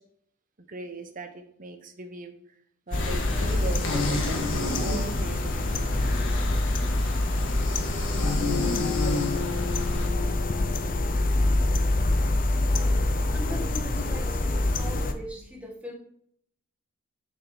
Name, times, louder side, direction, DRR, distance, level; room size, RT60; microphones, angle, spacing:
voice 1, 0.7-2.3 2.9-5.9 6.2-6.3, right 2 dB, 45° right, 6 dB, 1.0 m, -39 dB
sound 1, 2.9-10.1, left 2 dB, 70° left, 1.6 m, -32 dB
sound 2, 2.9-15.1, left 2 dB, 45° left, 0.7 m, -26 dB
Bass guitar, 8.4-12.8, left 8 dB, 90° left, 1.1 m, -36 dB
voice 2, 13.3-15.9, left 1 dB, 5° right, -1 dB, 1.8 m, -40 dB
6.6 x 6.1 x 4.9 m, 0.67 s
head